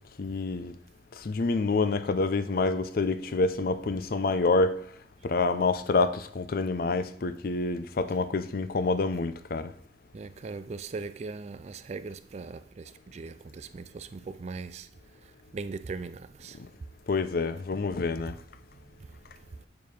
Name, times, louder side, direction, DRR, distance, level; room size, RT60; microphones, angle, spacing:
voice 1, 0.2-0.7 1.2-4.8 5.2-9.7 17.1-18.4, left 3 dB, 55° left, 0.5 m, -27 dB
voice 2, 10.1-14.9 15.2-16.7 19.0-19.7, right 4 dB, 40° right, 0.4 m, -40 dB
6.7 x 4.6 x 5.3 m
head